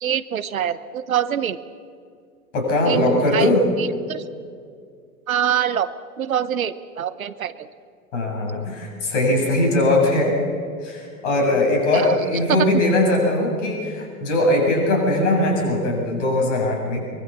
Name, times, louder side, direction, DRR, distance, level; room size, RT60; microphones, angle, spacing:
voice 1, 0.0-1.6 2.9-3.5 3.8-4.2 5.3-7.7 11.9-12.2 12.6-12.7, right 9 dB, 65° right, 15 dB, 1.1 m, -25 dB
voice 2, 2.5-3.6 8.1-10.4 10.8-17.0, left 1 dB, 55° left, 0 dB, 7.8 m, -20 dB
23.5 x 22.5 x 7.2 m, 2.2 s
figure-of-eight pair, 95°, 44 cm